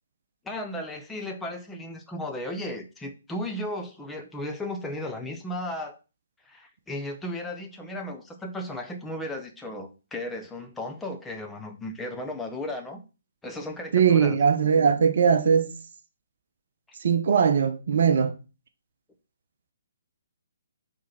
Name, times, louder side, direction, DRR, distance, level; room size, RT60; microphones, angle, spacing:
voice 1, 0.4-6.0 6.4-13.0 13.4-14.4, left 1 dB, 5° left, 0.8 m, -35 dB
voice 2, 13.9-15.7 17.0-18.3, right 6 dB, 50° right, 0.8 m, -20 dB
4.7 x 4.3 x 5.9 m
figure-of-eight pair, 130°, 0 cm